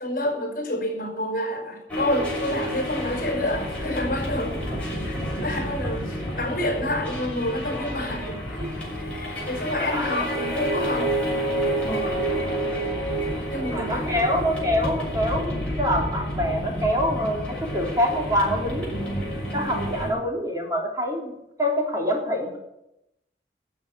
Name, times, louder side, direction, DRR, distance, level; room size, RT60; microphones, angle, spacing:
voice 1, 0.0-11.1 13.5-14.1, left 1 dB, 45° left, 2 dB, 5.4 m, -29 dB
sound 1, 1.9-20.1, equal, 5° left, 6.0 m, -29 dB
voice 2, 9.7-10.6 11.0-11.1 11.9-12.3 13.7-19.1 19.5-21.3 21.6-22.6, equal, 20° right, -1 dB, 3.5 m, -26 dB
13.0 x 7.8 x 9.3 m, 0.87 s
head